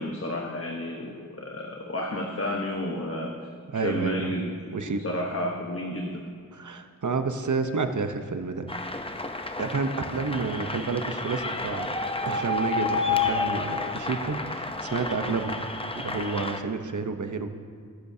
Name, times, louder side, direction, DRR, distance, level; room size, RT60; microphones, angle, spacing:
voice 1, 0.0-3.3 3.7-4.5 4.9-6.2, left 1 dB, 45° left, -1 dB, 1.2 m, -31 dB
voice 2, 3.7-4.3 4.7-5.0 6.5-8.7 9.6-11.9 12.3-15.7 15.9-17.5, right 4 dB, 60° right, 7 dB, 0.9 m, -30 dB
sound 1, 8.7-16.6, left 3 dB, 15° left, 0.7 m, -30 dB
19.5 x 10.5 x 2.8 m, 2.2 s
wide cardioid pair, 70°, 33 cm